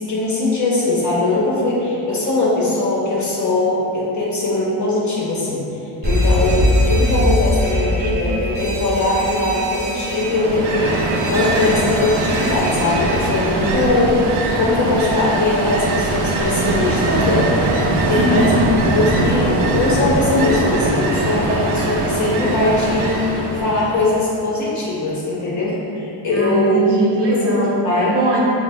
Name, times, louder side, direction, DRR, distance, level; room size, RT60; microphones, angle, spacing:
voice 1, 0.0-5.6 6.0-14.1 14.5-17.5 17.9-18.5 18.9-26.8 27.3-28.1, left 2 dB, 40° left, -5 dB, 0.6 m, -20 dB
Alarm, 6.0-13.7, equal, 25° right, 0.4 m, -22 dB
Ocean, 10.1-24.2, right 2 dB, 85° right, 0.6 m, -21 dB
voice 2, 13.6-13.9 18.0-18.6 26.3-28.4, right 1 dB, 50° right, -6 dB, 0.9 m, -20 dB
4.9 x 2.0 x 3.3 m, 2.8 s
cardioid pair, 165°, 49 cm